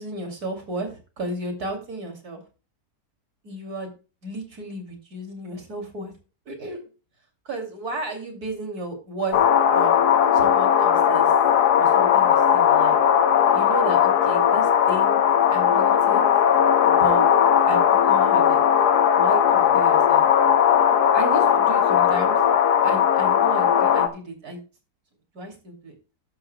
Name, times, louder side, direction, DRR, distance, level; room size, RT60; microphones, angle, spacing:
voice 1, 0.0-2.4 3.4-3.9 4.2-6.1 6.5-6.8 7.4-9.4 9.7-10.0 10.3-11.3 11.7-13.0 13.5-15.2 15.5-16.2 16.8-17.3 17.6-18.6 19.2-20.2 21.1-22.4 22.8-24.6 25.3-25.9, right 2 dB, 60° right, 4 dB, 3.2 m, -33 dB
sound 1, 9.3-24.1, left 8 dB, 70° left, 1.5 m, -18 dB
12.0 x 11.5 x 2.2 m, 0.32 s
omnidirectional pair, 1.8 m